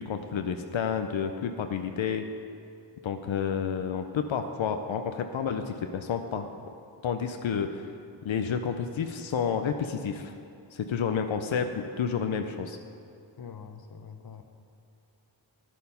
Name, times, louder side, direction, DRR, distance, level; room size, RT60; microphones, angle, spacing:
voice 1, 0.0-2.3 3.0-6.5 7.0-7.9 8.2-10.3 10.7-12.8, left 7 dB, 90° left, 7 dB, 0.6 m, -30 dB
voice 2, 13.4-14.4, left 6 dB, 55° left, 7 dB, 0.8 m, -44 dB
10.0 x 8.5 x 5.5 m, 2.5 s
wide cardioid pair, 65°, 45 cm